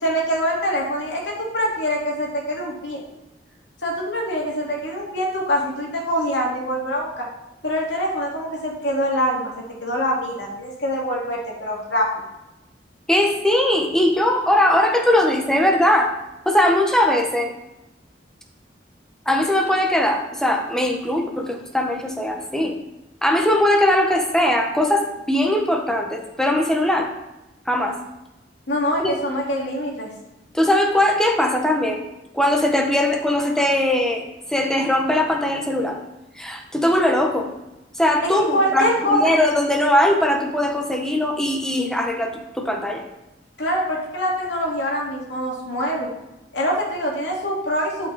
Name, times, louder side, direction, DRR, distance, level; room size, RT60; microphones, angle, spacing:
voice 1, 0.0-3.0 3.8-7.3 7.6-12.1 28.7-30.1 38.3-39.3 43.6-46.1 46.5-48.1, equal, 80° left, -2 dB, 2.5 m, -24 dB
voice 2, 13.1-16.1 16.5-17.5 19.3-22.7 23.2-27.1 27.7-28.0 29.0-29.1 30.5-32.0 32.3-34.2 34.5-36.0 36.4-37.5 38.0-43.0, left 1 dB, 5° left, 2 dB, 1.0 m, -20 dB
11.5 x 5.8 x 4.1 m, 0.98 s
head